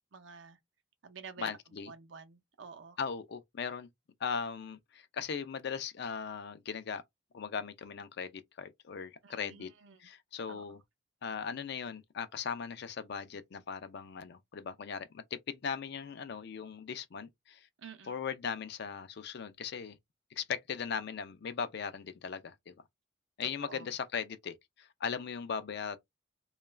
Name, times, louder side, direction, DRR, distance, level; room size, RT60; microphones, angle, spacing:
voice 1, 0.1-0.6 1.0-1.5 1.9-3.0 9.2-10.0 10.5-10.6 17.8-18.2 23.4-23.9, right 5 dB, 75° right, 0.6 m, -49 dB
voice 2, 1.4-1.9 3.0-3.9 4.2-7.0 7.3-9.7 10.0-10.8 11.2-17.7 18.1-20.0 20.4-22.7 23.4-26.0, left 6 dB, 60° left, 0.4 m, -38 dB
2.3 x 2.2 x 3.1 m
head